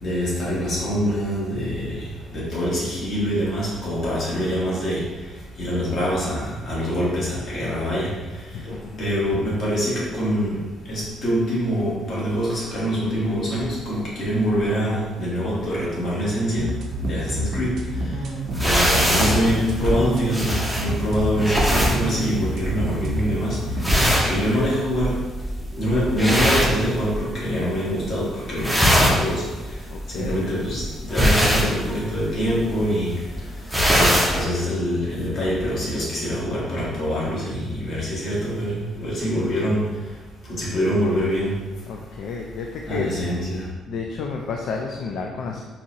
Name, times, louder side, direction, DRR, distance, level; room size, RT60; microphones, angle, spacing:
voice 1, 0.0-5.0 5.6-16.7 17.0-17.7 18.0-18.1 18.6-24.0 24.2-25.2 25.8-29.4 30.1-33.1 33.9-39.9 40.5-41.5 42.8-43.6, equal, 50° left, -6 dB, 1.3 m, -25 dB
voice 2, 8.5-9.1 24.1-24.5 29.9-30.5 41.9-43.1 43.9-45.6, left 4 dB, 65° left, 1 dB, 0.3 m, -31 dB
sound 1, 16.6-24.1, equal, 60° right, 0.5 m, -28 dB
sound 2, 18.5-27.5 27.8-28.2 28.5-34.4, equal, ahead, 0.5 m, -22 dB
3.9 x 2.7 x 2.9 m, 1.2 s
cardioid pair, 150°, 0 cm